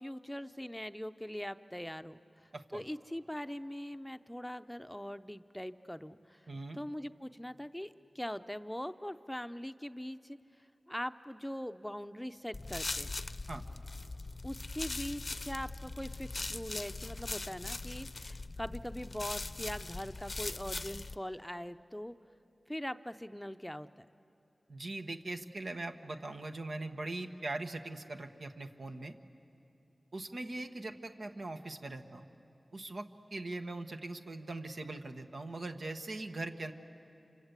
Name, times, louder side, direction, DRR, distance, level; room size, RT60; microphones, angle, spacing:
voice 1, 0.0-10.4 10.9-13.1 14.4-22.1 22.7-24.1, equal, 5° left, 10 dB, 0.6 m, -42 dB
voice 2, 2.5-2.8 6.5-6.8 13.5-13.6 24.7-29.2 30.1-32.3 32.7-36.7, right 2 dB, 75° right, 5 dB, 1.3 m, -41 dB
sound 1, 12.5-21.2, left 2 dB, 50° left, 0.6 m, -41 dB
28.5 x 25.5 x 8.2 m, 2.8 s
cardioid pair, 40°, 0 cm